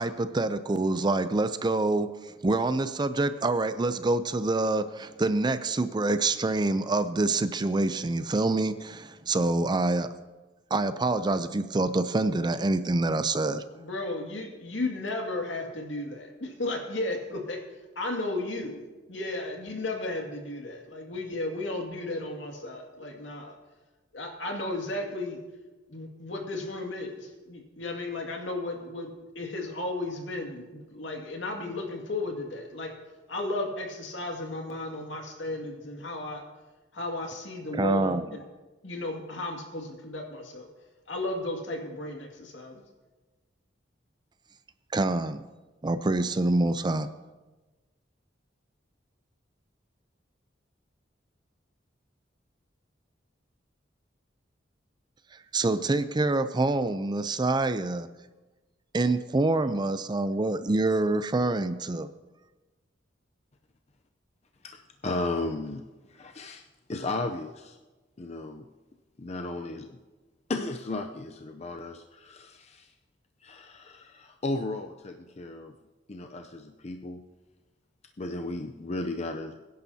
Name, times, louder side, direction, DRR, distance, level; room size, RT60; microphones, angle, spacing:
voice 1, 0.0-10.1 10.7-13.6 37.7-38.2 44.9-45.4 45.8-47.1 55.5-58.1 58.9-62.1, right 2 dB, 25° right, 11 dB, 0.5 m, -26 dB
voice 2, 13.7-17.6 18.0-18.8 19.1-23.5 24.1-25.4 25.9-32.9 33.3-36.4 36.9-38.4 38.8-40.7 41.1-42.8, left 2 dB, 80° left, 1 dB, 2.2 m, -34 dB
voice 3, 64.6-65.8 66.1-66.6 66.9-67.8 68.2-68.7 69.2-70.0 70.5-72.9 73.4-75.7 76.1-77.2 78.2-79.6, left 2 dB, 35° left, 5 dB, 0.6 m, -35 dB
23.0 x 10.5 x 2.8 m, 1.2 s
head